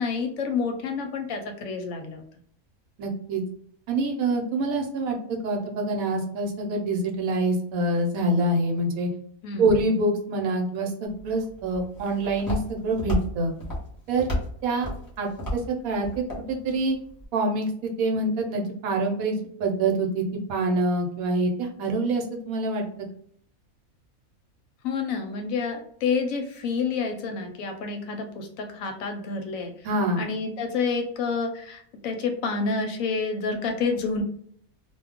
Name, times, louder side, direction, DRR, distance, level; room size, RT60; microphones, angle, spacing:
voice 1, 0.0-2.2 9.4-9.7 24.8-29.7 30.2-34.2, left 4 dB, 70° left, 5 dB, 0.9 m, -29 dB
voice 2, 3.0-3.4 3.9-9.1 9.6-13.5 14.1-14.3 14.6-14.9 15.2-17.0 17.3-22.8 29.8-30.2, right 2 dB, 75° right, 1 dB, 1.1 m, -26 dB
Walk footsteps, 11.1-17.2, equal, 20° left, 0.8 m, -34 dB
2.4 x 2.2 x 3.5 m, 0.62 s
omnidirectional pair, 1.5 m